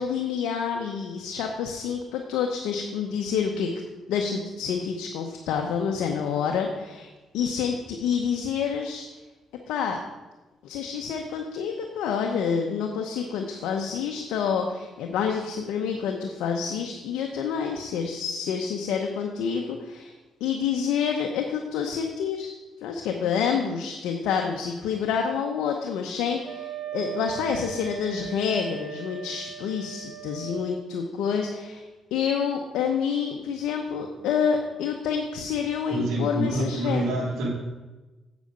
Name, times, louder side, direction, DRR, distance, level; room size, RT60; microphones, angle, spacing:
voice 1, 0.0-3.7 4.1-9.1 9.7-10.0 10.6-20.1 20.4-22.5 22.8-31.8 32.1-37.2, left 7 dB, 90° left, 2 dB, 0.8 m, -28 dB
Wind instrument woodwind instrument, 26.4-30.7, right 10 dB, 50° right, 1.4 m, -38 dB
voice 2, 35.9-37.5, right 1 dB, 80° right, -4 dB, 2.7 m, -27 dB
8.3 x 7.9 x 5.2 m, 1.2 s
cardioid pair, 90°, 0 cm